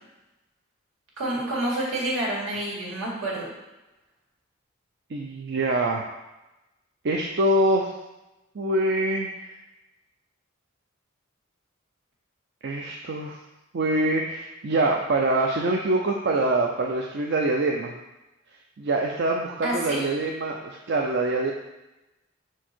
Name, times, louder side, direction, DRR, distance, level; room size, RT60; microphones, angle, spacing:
voice 1, 1.2-3.5 19.6-20.0, right 1 dB, 80° right, -5 dB, 2.2 m, -28 dB
voice 2, 5.1-6.1 7.0-7.9 8.5-9.4 12.6-13.4 13.7-18.0 18.8-21.5, right 2 dB, 60° right, 1 dB, 0.5 m, -24 dB
5.5 x 4.6 x 4.4 m, 1.0 s
head